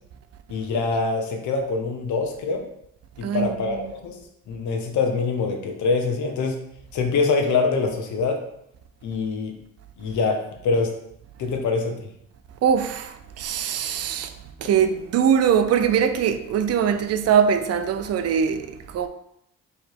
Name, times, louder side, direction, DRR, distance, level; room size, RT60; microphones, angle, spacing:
voice 1, 0.5-2.7 3.2-4.2 4.5-6.6 6.9-8.4 9.0-9.6 10.0-10.9 11.4-12.0, left 4 dB, 70° left, 0.8 m, -24 dB
voice 2, 3.2-3.8 12.6-14.3 14.6-19.1, right 8 dB, 55° right, 0.4 m, -22 dB
3.2 x 2.8 x 4.5 m
cardioid pair, 90°, 30 cm